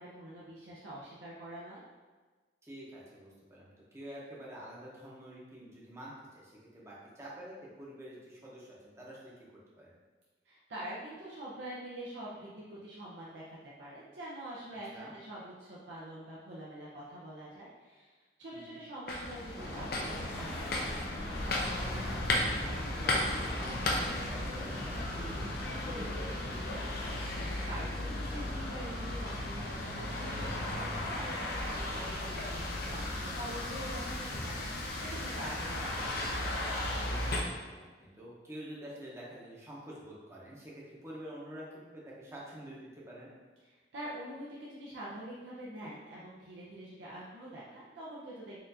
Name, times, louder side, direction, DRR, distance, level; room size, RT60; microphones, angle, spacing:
voice 1, 0.0-1.8 10.4-18.1 18.4-21.0 27.0-36.1 43.7-48.6, right 1 dB, 85° right, -7 dB, 0.6 m, -45 dB
voice 2, 2.6-3.7 3.9-9.3 9.8-9.9 14.9-15.1 18.5-18.8 21.8-26.6 31.9-32.1 37.0-43.3, right 1 dB, 15° right, -6 dB, 0.8 m, -48 dB
sound 1, 19.1-37.4, left 1 dB, 55° left, 0.5 m, -35 dB
sound 2, 19.5-31.1, left 1 dB, 90° left, 0.7 m, -44 dB
4.3 x 2.5 x 2.7 m, 1.3 s
head